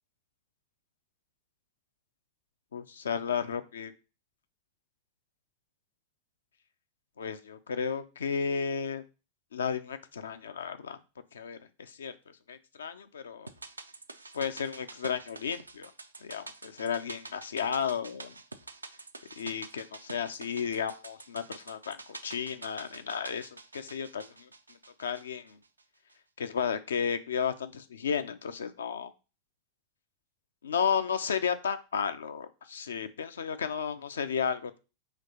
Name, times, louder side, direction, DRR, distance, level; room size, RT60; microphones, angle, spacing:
voice 1, 2.7-3.9 7.2-9.0 9.5-11.0 11.3-12.2 12.5-13.5 14.3-15.9 16.2-18.3 19.4-22.0 22.2-24.5 25.0-25.6 26.4-29.1 30.6-34.8, left 7 dB, 65° left, 10 dB, 0.4 m, -33 dB
sound 1, 13.5-25.8 26.1-26.2, right 3 dB, 80° right, 0.3 m, -47 dB
5.1 x 3.0 x 2.8 m, 0.32 s
figure-of-eight pair, 90°, 0 cm